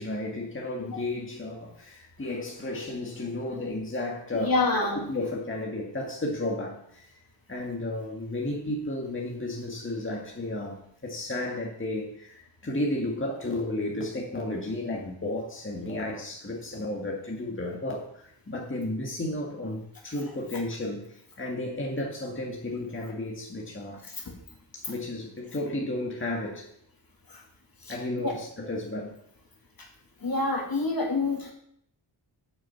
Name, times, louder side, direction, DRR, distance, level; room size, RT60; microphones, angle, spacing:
voice 1, 0.0-7.1 7.5-24.0 24.7-26.7 27.9-29.1, left 1 dB, 25° left, -1 dB, 1.9 m, -33 dB
voice 2, 4.4-5.1 24.1-24.3 27.3-27.4 27.8-27.9 28.2-28.3 30.2-31.5, left 3 dB, 45° left, 1 dB, 2.5 m, -27 dB
7.1 x 6.4 x 7.0 m, 0.71 s
cardioid pair, 50°, 48 cm